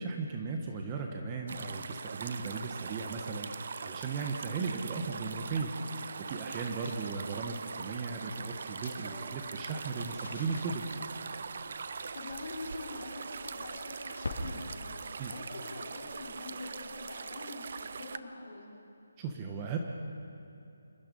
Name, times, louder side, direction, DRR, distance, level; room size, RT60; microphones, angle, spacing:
voice 1, 0.0-3.5 3.8-10.8 15.2-15.3 19.2-19.8, right 4 dB, 20° right, 2 dB, 1.3 m, -36 dB
sound 1, 1.5-18.2, right 5 dB, 45° right, 0.8 m, -42 dB
voice 2, 6.6-6.9 12.1-18.7, left 2 dB, 45° left, -3 dB, 6.0 m, -45 dB
sound 2, 8.0-17.5, left 2 dB, 80° left, 4.0 m, -48 dB
sound 3, 9.1-12.9 13.9-14.0, right 1 dB, ahead, 2.5 m, -60 dB
26.5 x 22.0 x 5.5 m, 2.7 s
hypercardioid pair, 170°, 0 cm